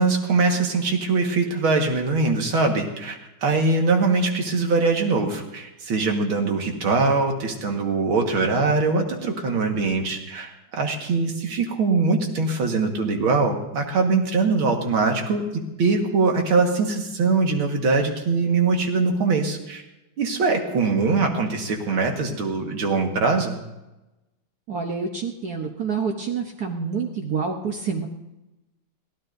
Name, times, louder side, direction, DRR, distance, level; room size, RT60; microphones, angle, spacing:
voice 1, 0.0-15.4 15.8-19.8 20.2-23.6, right 4 dB, 85° right, 3 dB, 2.5 m, -22 dB
voice 2, 24.7-28.1, right 5 dB, 55° right, 2 dB, 1.4 m, -27 dB
22.5 x 16.0 x 2.7 m, 0.99 s
omnidirectional pair, 2.2 m